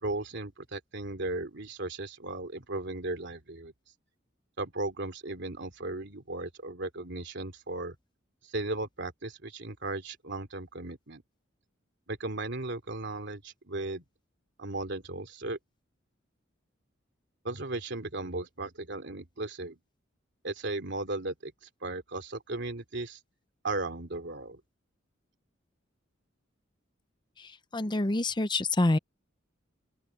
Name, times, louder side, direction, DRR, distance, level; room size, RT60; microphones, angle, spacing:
voice 1, 0.0-3.7 4.6-7.9 8.5-11.2 12.1-14.0 14.6-15.6 17.4-19.8 20.4-21.5 21.8-23.2 23.6-24.6, right 2 dB, 65° right, 3.0 m, -36 dB
voice 2, 27.7-29.0, left 2 dB, 25° left, 0.7 m, -26 dB
open air
head